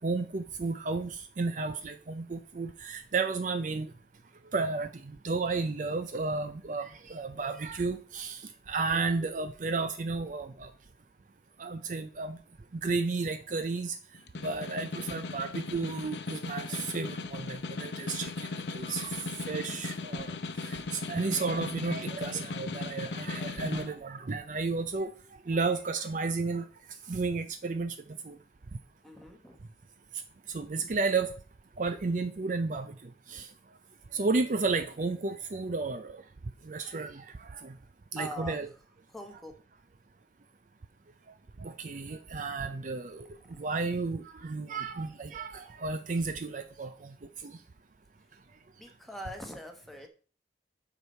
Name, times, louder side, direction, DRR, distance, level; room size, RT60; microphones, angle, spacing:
voice 1, 0.0-3.9 4.5-10.7 11.6-12.4 12.8-14.0 14.4-20.4 20.7-25.1 25.5-26.6 27.1-28.0 28.3-28.4 30.5-31.3 31.8-32.9 33.3-33.5 34.1-36.2 36.7-37.7 38.1-38.7 41.6-43.3 43.6-47.1 47.4-47.6, right 4 dB, 45° right, 9 dB, 0.5 m, -32 dB
voice 2, 8.8-9.1 29.0-29.6 38.2-38.6 39.1-39.5 48.8-50.1, left 1 dB, ahead, 3 dB, 1.2 m, -43 dB
Snare drum, 14.1-23.9, left 3 dB, 75° left, 0.7 m, -37 dB
8.2 x 4.6 x 5.5 m, 0.40 s
head